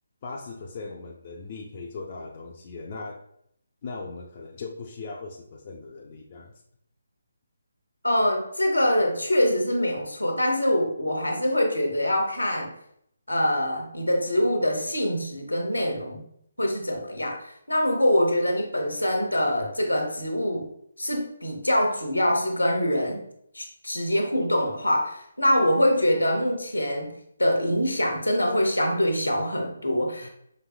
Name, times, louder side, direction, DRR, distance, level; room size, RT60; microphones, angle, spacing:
voice 1, 0.2-3.3 3.8-6.5 30.2-30.3, left 3 dB, 35° left, 0 dB, 0.4 m, -39 dB
voice 2, 8.0-12.7 13.3-16.2 16.6-20.7 21.0-23.2 23.5-27.1 27.4-30.3, left 1 dB, 80° left, 3 dB, 0.8 m, -24 dB
5.1 x 2.6 x 2.2 m, 0.70 s
figure-of-eight pair, 145°, 0 cm